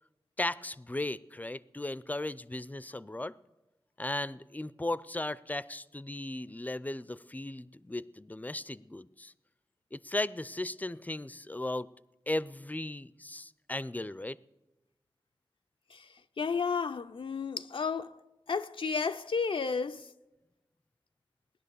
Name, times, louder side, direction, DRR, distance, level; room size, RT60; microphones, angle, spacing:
voice 1, 0.4-3.3 4.0-9.3 9.9-11.9 12.3-14.4, left 2 dB, 20° left, 0.4 m, -36 dB
voice 2, 16.4-18.1 18.5-20.1, left 5 dB, 75° left, 0.4 m, -32 dB
18.0 x 10.5 x 6.8 m
wide cardioid pair, 70°, 9 cm